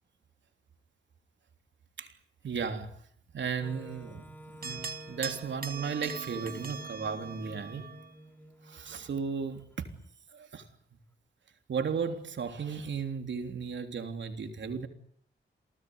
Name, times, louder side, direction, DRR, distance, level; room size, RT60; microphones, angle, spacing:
voice 1, 2.4-3.0 3.3-7.9 8.6-9.9 10.3-10.7 11.7-14.9, right 6 dB, 65° right, 3.4 m, -35 dB
Wind instrument woodwind instrument, 3.6-9.6, equal, 10° left, 3.5 m, -51 dB
Singing Bowl Patterns, 4.6-8.1, right 5 dB, 45° right, 2.4 m, -41 dB
29.0 x 19.0 x 9.6 m
wide cardioid pair, 155°, 20 cm